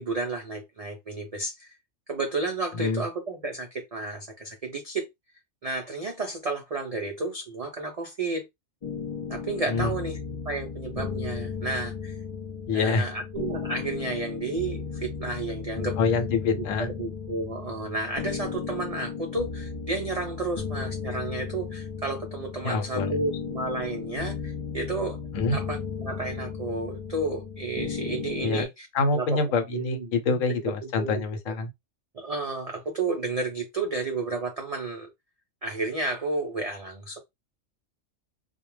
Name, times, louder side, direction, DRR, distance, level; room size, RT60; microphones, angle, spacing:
voice 1, 0.0-1.7 2.1-5.0 5.6-8.4 9.3-10.2 10.5-12.2 12.7-16.0 16.5-25.2 25.5-28.9 29.1-29.4 29.7-30.6 31.0-31.2 32.1-35.1 35.6-37.2, right 3 dB, 65° right, 0.3 m, -32 dB
sound 1, 8.8-28.7, left 6 dB, 55° left, 0.3 m, -35 dB
voice 2, 12.7-13.1 16.0-16.9 22.6-23.2 25.3-25.6 28.4-28.6 28.9-31.7, left 4 dB, 80° left, 1.0 m, -26 dB
2.3 x 2.2 x 3.1 m
omnidirectional pair, 1.3 m